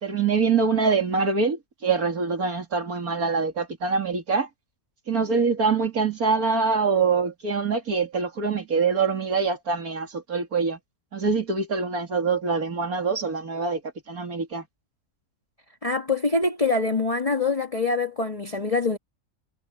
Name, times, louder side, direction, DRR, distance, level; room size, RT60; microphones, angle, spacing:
voice 1, 0.0-4.5 5.1-10.8 11.1-13.8 14.1-14.6, right 5 dB, 85° right, 3.2 m, -24 dB
voice 2, 15.8-19.0, left 3 dB, 25° left, 1.9 m, -24 dB
omnidirectional pair, 1.5 m